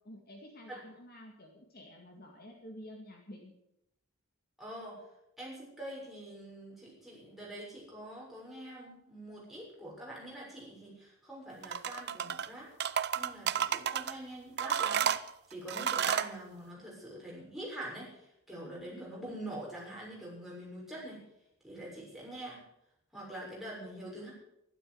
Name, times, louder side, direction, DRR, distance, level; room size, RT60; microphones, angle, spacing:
voice 1, 0.0-3.5 18.6-19.0, left 1 dB, 45° left, 1 dB, 2.2 m, -50 dB
voice 2, 4.6-5.0 5.4-12.7 13.1-15.1 15.5-21.2 21.6-22.6 23.1-24.3, right 1 dB, ahead, -5 dB, 6.5 m, -45 dB
sound 1, 11.6-12.5 12.8-14.1 14.6-16.3, right 8 dB, 50° right, 0.6 m, -31 dB
12.5 x 12.0 x 7.9 m, 0.82 s
head